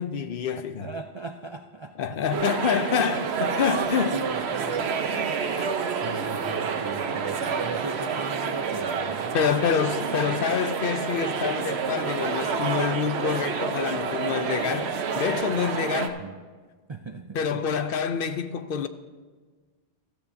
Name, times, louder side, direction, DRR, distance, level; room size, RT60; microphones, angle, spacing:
voice 1, 0.0-0.9 2.0-4.1 5.6-5.7 9.3-16.2 17.3-18.9, left 7 dB, 60° left, 0.7 m, -27 dB
voice 2, 0.8-2.2 3.0-3.3 4.1-5.7 6.0-9.7 16.2-16.3 16.9-17.6, right 4 dB, 50° right, 0.3 m, -38 dB
sound 1, 2.3-16.1, right 6 dB, 75° right, 1.0 m, -28 dB
15.5 x 13.5 x 2.7 m
omnidirectional pair, 1.1 m